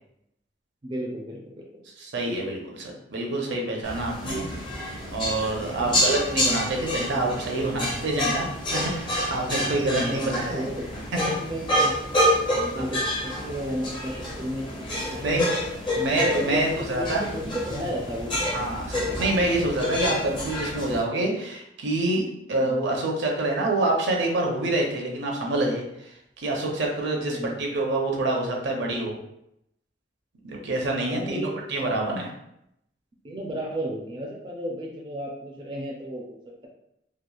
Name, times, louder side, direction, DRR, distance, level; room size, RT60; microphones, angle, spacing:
voice 1, 0.8-1.7 5.7-6.0 9.9-11.9 12.5-15.6 16.3-18.4 18.9-19.1 22.6-22.8 27.3-27.7 31.0-31.6 33.2-36.7, equal, 25° right, -1 dB, 0.4 m, -34 dB
voice 2, 2.0-4.4 5.1-10.7 12.7-12.8 15.2-15.5 16.0-17.2 18.5-29.2 30.4-32.3, right 2 dB, 70° right, 0 dB, 0.6 m, -27 dB
sound 1, 3.8-21.0, left 1 dB, 25° left, 0.6 m, -28 dB
2.9 x 2.3 x 2.3 m, 0.79 s
head